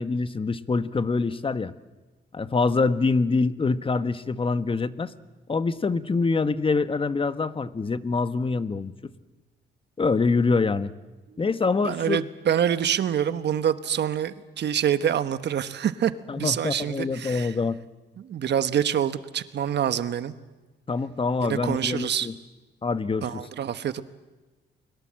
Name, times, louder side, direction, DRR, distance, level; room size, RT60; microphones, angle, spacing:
voice 1, 0.0-1.7 2.3-5.1 5.5-9.1 10.0-10.9 11.4-12.2 16.3-17.8 20.9-22.4 22.8-23.4, left 4 dB, 25° left, 12 dB, 1.2 m, -25 dB
voice 2, 11.8-16.1 16.4-17.5 18.2-20.3 21.4-22.3 23.2-24.0, right 9 dB, 60° right, 11 dB, 1.3 m, -26 dB
29.0 x 22.0 x 7.7 m, 1.2 s
cardioid pair, 90°, 20 cm